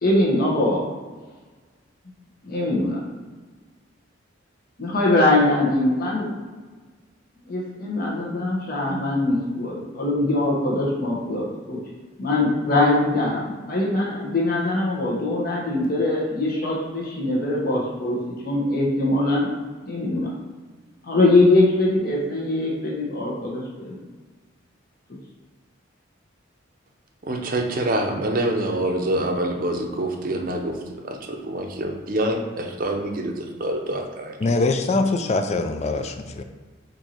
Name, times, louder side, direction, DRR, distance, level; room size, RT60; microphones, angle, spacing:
voice 1, 0.0-0.8 2.4-3.0 4.8-6.4 7.5-11.8 12.2-18.2 18.4-19.5 19.8-20.3 21.0-24.0, left 2 dB, 50° left, -3 dB, 1.0 m, -22 dB
voice 2, 27.2-31.2 31.4-34.4, right 1 dB, 45° right, 3 dB, 0.6 m, -26 dB
voice 3, 34.4-36.4, left 3 dB, 35° left, 7 dB, 0.3 m, -23 dB
4.6 x 2.6 x 4.3 m, 1.4 s
head